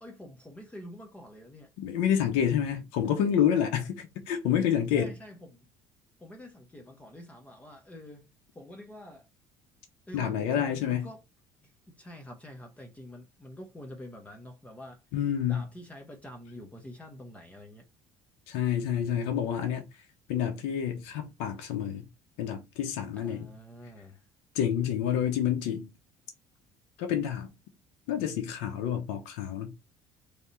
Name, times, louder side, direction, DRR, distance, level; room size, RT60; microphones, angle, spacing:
voice 1, 0.0-1.7 4.9-5.7 6.2-8.3 8.5-9.3 10.1-11.2 11.6-15.0 15.4-17.8 23.2-24.2, left 1 dB, 15° left, 1.1 m, -47 dB
voice 2, 1.8-5.1 10.1-11.1 15.1-15.6 18.5-19.9 20.3-22.1 22.4-23.5 24.5-25.9 27.0-27.5 28.1-29.7, left 9 dB, 85° left, 0.9 m, -28 dB
3.5 x 2.8 x 4.3 m
cardioid pair, 100°, 10 cm